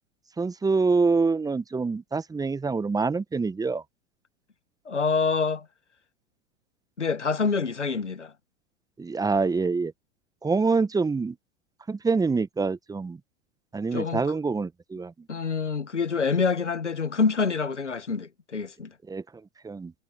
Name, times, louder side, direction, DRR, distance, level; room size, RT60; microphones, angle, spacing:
voice 1, 0.4-3.8 9.0-9.9 10.4-11.3 11.9-13.2 13.7-15.1 19.1-19.2 19.6-19.9, right 4 dB, 10° right, 1.2 m, -25 dB
voice 2, 4.8-5.6 7.0-8.3 13.9-14.2 15.3-18.9, left 5 dB, 85° left, 1.6 m, -26 dB
figure-of-eight pair, 95°, 34 cm